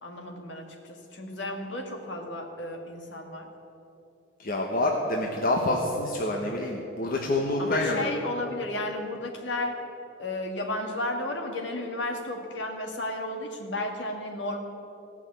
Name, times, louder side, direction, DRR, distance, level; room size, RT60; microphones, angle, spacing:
voice 1, 0.0-3.5 7.6-9.8 10.2-14.6, left 1 dB, 65° left, 3 dB, 1.8 m, -33 dB
voice 2, 4.4-8.1, left 2 dB, 50° left, 0 dB, 1.1 m, -27 dB
16.0 x 6.2 x 9.1 m, 2.9 s
head